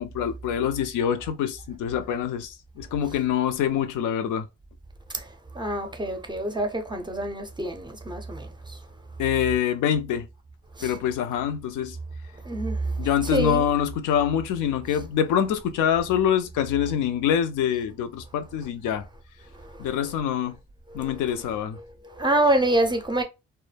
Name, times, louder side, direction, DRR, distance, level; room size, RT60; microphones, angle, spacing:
voice 1, 0.0-4.5 9.2-10.3 10.8-12.0 13.0-19.1 19.8-20.6 20.9-21.8, left 9 dB, 80° left, 0.5 m, -25 dB
voice 2, 5.1-8.8 10.7-11.0 12.3-13.7 19.5-19.9 20.9-21.2 21.8-23.2, right 1 dB, 15° right, 0.5 m, -27 dB
2.1 x 2.1 x 3.2 m
cardioid pair, 90°, 30 cm